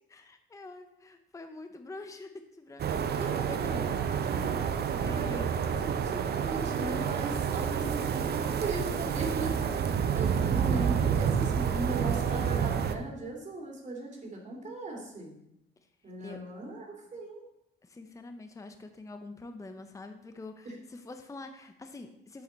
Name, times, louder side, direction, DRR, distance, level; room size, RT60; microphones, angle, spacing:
voice 1, 0.1-3.7 4.9-5.5 10.2-10.6 16.2-16.4 17.8-22.4, left 2 dB, 15° left, 7 dB, 0.7 m, -46 dB
sound 1, 2.8-12.9, right 7 dB, 55° right, 0.7 m, -29 dB
voice 2, 3.2-3.8 4.2-4.5 5.1-15.3 16.0-17.4 20.6-20.7, right 2 dB, 35° right, -1 dB, 2.8 m, -38 dB
7.8 x 7.6 x 4.0 m, 0.82 s
cardioid pair, 90°, 20 cm